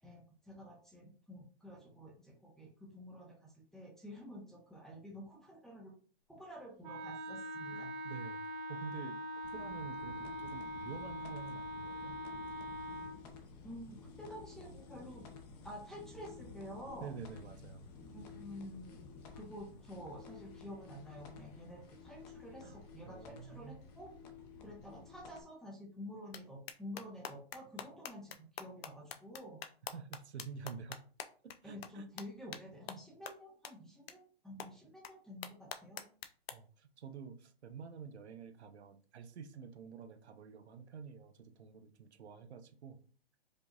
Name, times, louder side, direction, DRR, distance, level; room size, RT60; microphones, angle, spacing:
voice 1, 0.0-5.9 6.3-7.9 13.6-15.3 15.6-17.1 18.0-19.0 19.3-24.1 24.6-29.6 31.6-36.0, equal, ahead, -3 dB, 0.6 m, -50 dB
Wind instrument woodwind instrument, 6.8-13.2, equal, 45° right, 0.7 m, -43 dB
voice 2, 7.7-12.2 17.0-17.9 22.6-22.8 23.0-23.8 29.9-31.0 31.4-32.0 36.5-43.0, right 6 dB, 85° right, 9 dB, 0.7 m, -49 dB
sound 1, 9.4-25.4, left 4 dB, 40° left, 0.9 m, -53 dB
sound 2, 26.3-26.4 26.7-31.6 31.8-31.9 32.2-32.3 32.5-32.6 32.9-33.0 33.3-33.4 33.6-33.7 34.1-34.2 34.6-34.7 35.0-35.1 35.4-36.5, left 8 dB, 65° left, 0.6 m, -44 dB
5.0 x 2.7 x 2.5 m, 0.42 s
hypercardioid pair, 135°, 32 cm